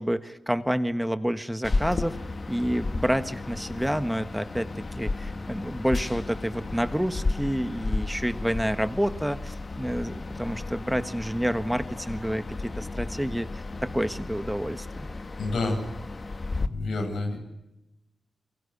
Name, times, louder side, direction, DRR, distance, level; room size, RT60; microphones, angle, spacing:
voice 1, 0.0-2.2 2.5-4.7 5.0-15.1, equal, 5° right, 11 dB, 1.5 m, -29 dB
sound 1, 1.6-16.7, left 3 dB, 40° left, 1.9 m, -33 dB
voice 2, 15.4-15.8 16.5-17.4, left 2 dB, 85° left, 5 dB, 7.7 m, -29 dB
28.5 x 23.0 x 8.4 m, 0.92 s
cardioid pair, 65°, 0 cm